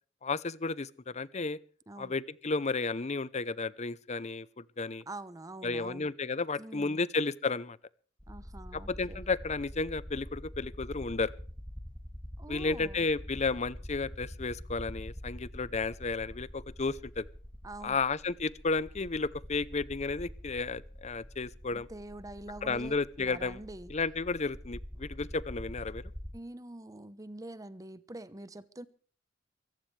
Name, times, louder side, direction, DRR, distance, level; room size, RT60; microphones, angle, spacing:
voice 1, 0.2-1.6 2.0-5.0 5.6-7.8 8.7-11.3 12.5-17.3 17.8-21.9 22.6-23.6 23.9-26.0, left 3 dB, 35° left, 0.7 m, -33 dB
voice 2, 1.9-2.2 5.1-6.1 6.6-7.0 8.3-9.2 12.4-13.1 17.6-18.0 21.7-23.9 26.3-28.9, right 1 dB, 20° right, 1.0 m, -45 dB
sound 1, 8.2-26.3, equal, 5° left, 2.9 m, -45 dB
23.5 x 15.5 x 3.4 m
head